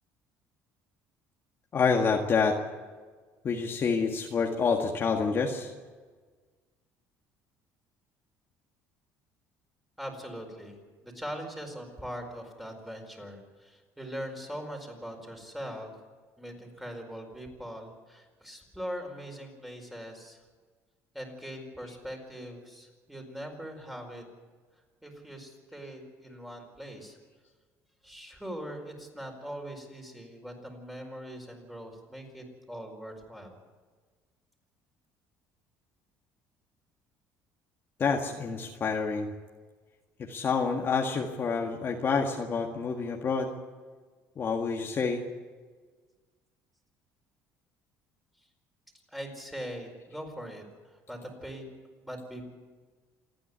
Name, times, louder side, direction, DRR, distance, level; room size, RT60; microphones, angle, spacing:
voice 1, 1.7-2.6 3.4-5.7 38.0-39.3 40.2-43.5 44.4-45.2, left 5 dB, 35° left, 1 dB, 1.8 m, -28 dB
voice 2, 10.0-15.9 16.4-20.4 21.1-24.2 25.0-27.2 28.0-33.5 49.1-51.6 52.0-52.4, equal, 5° right, 2 dB, 4.8 m, -41 dB
28.0 x 9.9 x 9.7 m, 1.4 s
cardioid pair, 120°, 6 cm